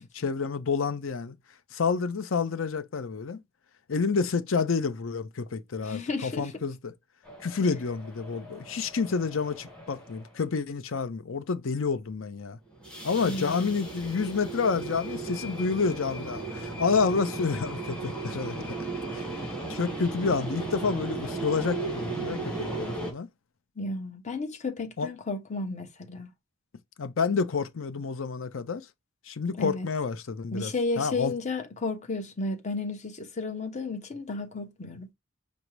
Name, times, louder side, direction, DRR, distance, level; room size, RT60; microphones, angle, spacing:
voice 1, 0.1-1.4 1.7-3.4 3.9-6.9 7.4-12.6 13.0-18.7 19.1-19.2 19.7-23.3 25.0-25.1 27.0-28.9 29.3-31.3, left 5 dB, 70° left, 0.6 m, -29 dB
voice 2, 5.8-6.5 13.2-13.8 23.8-26.3 29.6-29.9 30.5-35.1, left 3 dB, 35° left, 0.9 m, -33 dB
sound 1, 7.2-10.4 12.7-23.1, right 3 dB, 5° left, 1.5 m, -36 dB
5.3 x 2.0 x 4.5 m
head